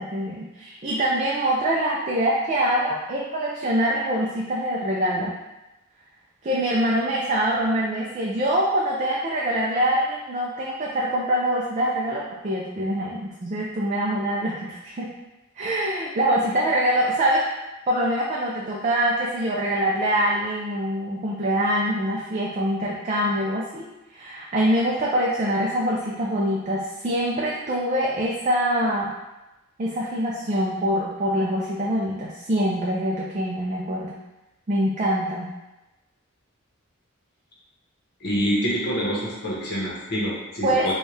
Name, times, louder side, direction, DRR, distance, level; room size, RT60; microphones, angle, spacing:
voice 1, 0.0-5.3 6.4-15.1 15.6-17.5 17.9-29.1 29.8-34.1 34.7-35.5 40.6-40.9, right 1 dB, 35° right, -3 dB, 0.4 m, -24 dB
voice 2, 38.2-40.9, equal, 50° left, -5 dB, 1.1 m, -26 dB
4.4 x 2.3 x 3.3 m, 1.0 s
head